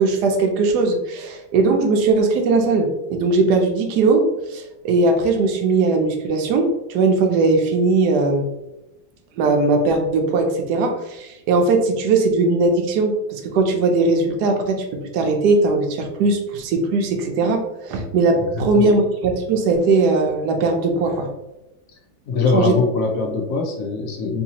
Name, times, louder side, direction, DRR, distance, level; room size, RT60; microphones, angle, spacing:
voice 1, 0.0-8.5 9.4-21.3 22.5-22.7, right 3 dB, 70° right, 4 dB, 1.1 m, -19 dB
voice 2, 22.3-24.4, left 4 dB, 80° left, 1 dB, 0.7 m, -21 dB
3.9 x 2.7 x 2.8 m, 0.93 s
omnidirectional pair, 2.0 m